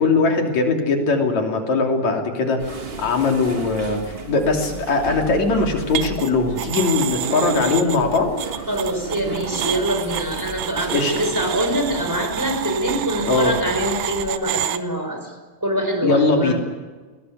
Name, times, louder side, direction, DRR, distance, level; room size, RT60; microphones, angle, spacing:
voice 1, 0.0-8.3 10.9-11.1 13.3-13.5 16.0-16.6, left 3 dB, 60° left, 2 dB, 4.2 m, -20 dB
sound 1, 2.6-14.3, right 3 dB, 50° right, 0.7 m, -34 dB
sound 2, 5.9-6.3 6.6-14.8, right 12 dB, 70° right, 2.0 m, -29 dB
voice 2, 8.7-15.3 15.6-16.6, equal, 5° right, 4 dB, 5.0 m, -24 dB
22.0 x 18.5 x 9.6 m, 1.3 s
omnidirectional pair, 3.6 m